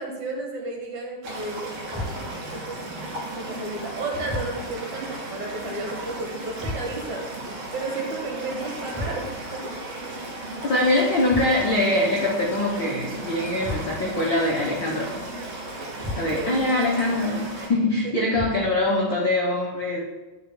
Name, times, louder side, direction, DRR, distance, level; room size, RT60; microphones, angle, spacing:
voice 1, 0.0-2.8 3.3-7.3 7.7-9.8 16.0-16.6 18.2-18.3, right 2 dB, 60° right, -1 dB, 2.6 m, -33 dB
sound 1, 1.2-17.7, right 1 dB, 80° right, 4.1 m, -35 dB
sound 2, 1.9-2.5 4.3-4.9 6.6-7.2 8.9-9.6 11.3-11.9 13.6-14.3 16.0-16.6 18.3-18.9, left 1 dB, 5° left, 0.6 m, -35 dB
voice 2, 10.6-15.1 16.2-20.0, left 1 dB, 90° left, -3 dB, 1.0 m, -23 dB
11.0 x 9.1 x 2.2 m, 1.2 s
omnidirectional pair, 4.1 m